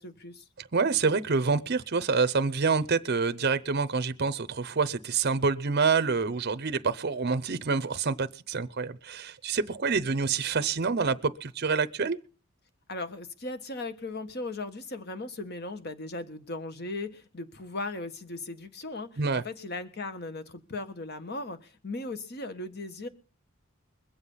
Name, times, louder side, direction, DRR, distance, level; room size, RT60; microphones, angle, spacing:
voice 1, 0.0-0.4 12.9-23.1, left 2 dB, 50° left, 9 dB, 1.6 m, -37 dB
voice 2, 0.6-12.2 19.2-19.4, right 4 dB, 50° right, 11 dB, 0.7 m, -27 dB
21.5 x 8.0 x 5.6 m, 0.37 s
head